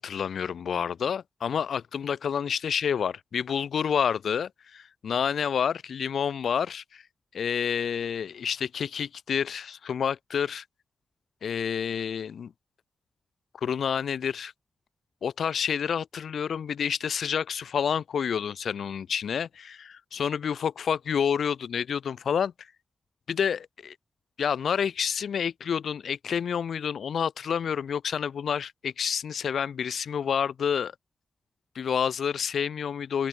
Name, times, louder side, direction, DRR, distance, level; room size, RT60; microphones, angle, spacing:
voice 1, 0.0-7.0 7.3-10.6 11.4-12.5 13.6-14.5 15.2-22.5 23.3-23.9 24.4-30.9 31.7-33.3, left 7 dB, 85° left, 2.5 m, -29 dB
wide cardioid pair, 135°, 0 cm